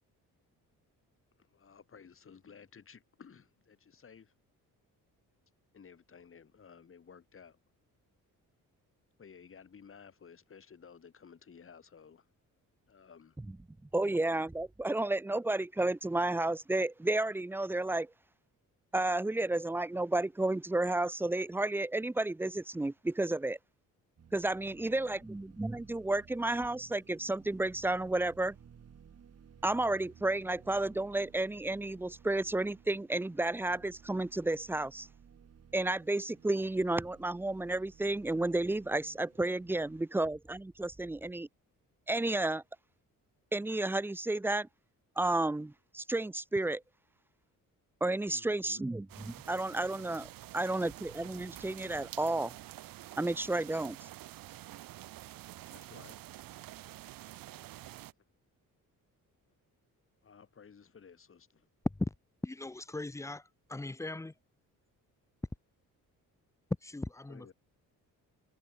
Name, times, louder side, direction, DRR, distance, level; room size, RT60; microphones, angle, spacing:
voice 1, 1.4-4.3 5.7-7.6 9.2-12.3 12.9-13.4 24.7-25.2 48.3-48.9 55.7-56.3 58.2-58.3 60.2-61.7 67.3-67.5, left 6 dB, 40° left, 6.1 m, -55 dB
voice 2, 13.9-18.1 18.9-23.6 24.3-28.6 29.6-35.1 35.7-41.5 42.1-42.6 43.5-44.7 45.2-46.8 48.0-49.1 49.3-50.3 50.5-52.5 53.2-54.0, right 2 dB, 5° right, 0.5 m, -32 dB
sound 1, 24.2-40.0, right 7 dB, 45° right, 6.1 m, -58 dB
sound 2, 49.1-58.1, right 15 dB, 90° right, 1.1 m, -48 dB
voice 3, 62.4-63.4 63.7-64.3 66.8-67.5, left 2 dB, 10° left, 1.0 m, -38 dB
cardioid pair, 130°, 33 cm